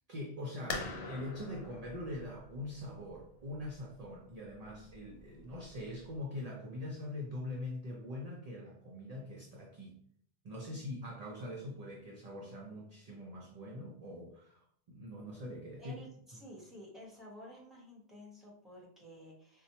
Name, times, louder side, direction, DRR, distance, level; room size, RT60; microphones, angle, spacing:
voice 1, 0.1-10.0 10.4-14.6 14.9-16.0, left 1 dB, 50° right, -1 dB, 0.5 m, -43 dB
sound 1, 0.7-6.2, left 3 dB, 75° left, 0.8 m, -45 dB
voice 2, 15.8-19.6, equal, ahead, -4 dB, 1.0 m, -52 dB
4.1 x 2.1 x 2.8 m, 0.64 s
omnidirectional pair, 1.1 m